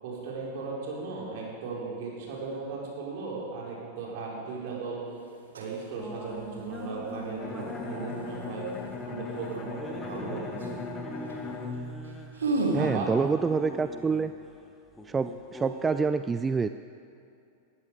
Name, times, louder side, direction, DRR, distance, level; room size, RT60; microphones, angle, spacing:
voice 1, 0.0-5.0 5.6-8.7 9.0-10.8 12.7-13.1, right 4 dB, 50° right, -3 dB, 4.5 m, -36 dB
sound 1, 4.5-4.7 5.3-5.8 6.2-6.8 10.2-10.3 10.5-10.8 11.2-11.4 11.8-11.9 12.1-12.9, right 2 dB, 70° right, 2.1 m, -31 dB
sound 2, 6.0-16.0, equal, 5° left, 2.0 m, -44 dB
Bowed string instrument, 7.4-13.1, left 4 dB, 25° left, 1.6 m, -39 dB
voice 2, 12.7-14.3 15.1-16.7, right 5 dB, 15° right, 12 dB, 0.3 m, -27 dB
19.0 x 14.0 x 4.9 m, 2.6 s
figure-of-eight pair, 90°, 0 cm